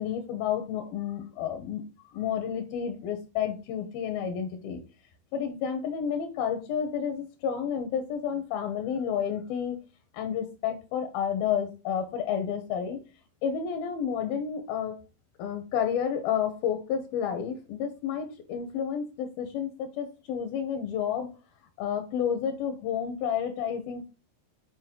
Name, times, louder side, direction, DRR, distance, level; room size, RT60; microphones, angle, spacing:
voice 1, 0.0-1.8 2.1-4.8 5.3-9.8 10.1-13.0 13.4-15.0 15.4-21.3 21.8-24.1, left 8 dB, 75° left, 6 dB, 2.2 m, -30 dB
9.5 x 5.1 x 3.8 m, 0.31 s
omnidirectional pair, 5.5 m